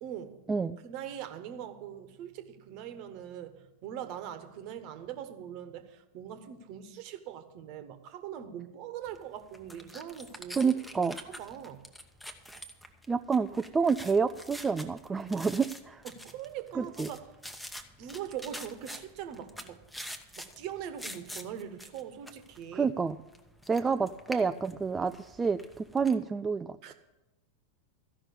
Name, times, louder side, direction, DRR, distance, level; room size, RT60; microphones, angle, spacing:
voice 1, 0.0-0.4 0.8-11.9 16.0-17.3 18.0-19.8 20.4-22.9 26.8-26.9, right 9 dB, 45° right, 9 dB, 1.2 m, -42 dB
sound 1, 9.1-26.1, equal, ahead, 0.9 m, -47 dB
voice 2, 10.6-11.2 13.1-16.0 16.7-17.1 22.7-23.2 23.7-26.8, right 5 dB, 15° right, 9 dB, 0.3 m, -28 dB
14.0 x 5.9 x 8.5 m, 1.0 s
figure-of-eight pair, 90°, 0 cm